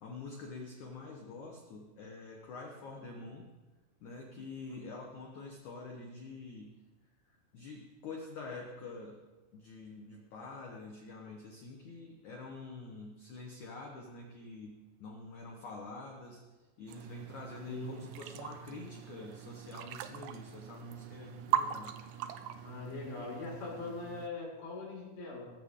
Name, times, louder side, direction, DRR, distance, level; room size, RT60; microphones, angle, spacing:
voice 1, 0.0-3.5 4.0-6.8 7.5-9.2 9.5-16.4 16.8-21.9, left 3 dB, 80° left, 1 dB, 1.7 m, -46 dB
sound 1, 16.9-24.3, right 10 dB, 80° right, 2.7 m, -40 dB
voice 2, 17.7-18.0 22.6-25.5, left 3 dB, 50° left, -4 dB, 6.7 m, -41 dB
20.5 x 15.0 x 3.7 m, 1.2 s
omnidirectional pair, 5.7 m